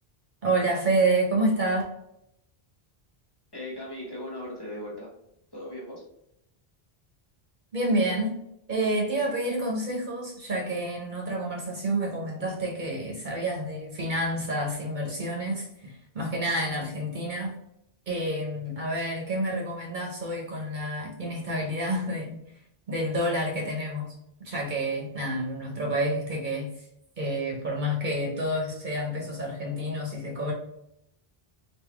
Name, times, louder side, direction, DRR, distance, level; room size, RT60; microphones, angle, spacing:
voice 1, 0.4-1.8 7.7-8.4 8.7-17.5 18.1-22.4 22.9-24.1 24.4-26.7 27.2-30.5, right 1 dB, 50° right, -2 dB, 1.0 m, -28 dB
voice 2, 3.5-5.1 5.5-6.0, left 1 dB, 25° left, -4 dB, 1.4 m, -38 dB
3.6 x 2.8 x 3.3 m, 0.78 s
omnidirectional pair, 1.0 m